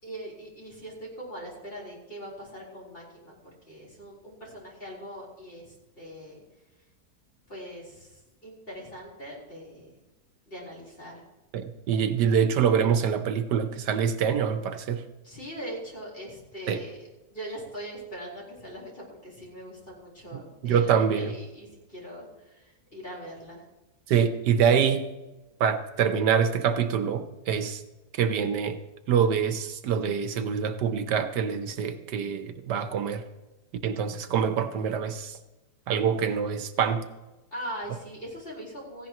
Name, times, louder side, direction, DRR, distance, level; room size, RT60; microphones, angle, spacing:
voice 1, 0.0-3.3 3.7-6.4 7.5-9.9 10.5-11.2 15.2-23.6 37.5-39.1, equal, 35° left, -3 dB, 4.6 m, -41 dB
voice 2, 11.5-15.0 16.7-16.8 20.6-21.3 24.1-25.1 25.6-27.8 28.2-28.8 29.1-33.2 33.8-35.4 35.9-37.1, right 7 dB, 85° right, 9 dB, 1.6 m, -25 dB
17.0 x 15.0 x 3.0 m, 1.1 s
omnidirectional pair, 1.8 m